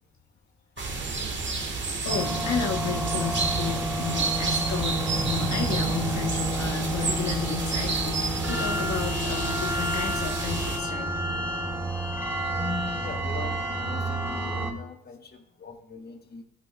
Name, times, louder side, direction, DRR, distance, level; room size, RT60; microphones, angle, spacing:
sound 1, 0.8-10.8, right 4 dB, 40° right, 1.6 m, -30 dB
voice 1, 2.0-8.2 8.5-11.3, left 7 dB, 65° left, 2 dB, 1.2 m, -33 dB
sound 2, 2.1-14.7, right 1 dB, 10° right, 2.7 m, -30 dB
voice 2, 12.5-16.4, left 4 dB, 30° left, 2 dB, 1.6 m, -40 dB
12.5 x 8.7 x 2.3 m, 0.72 s
cardioid pair, 90°, 30 cm